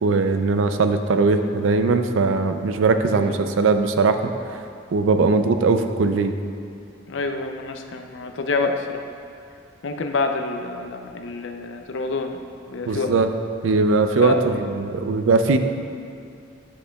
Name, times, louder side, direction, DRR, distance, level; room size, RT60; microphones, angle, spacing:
voice 1, 0.0-4.2 4.9-6.3 12.9-13.3 13.6-15.6, right 3 dB, 75° right, 8 dB, 0.4 m, -20 dB
voice 2, 7.1-9.0 9.8-12.4 12.7-13.1 14.2-14.4, left 3 dB, 65° left, 5 dB, 0.5 m, -27 dB
10.0 x 6.5 x 2.3 m, 2.5 s
head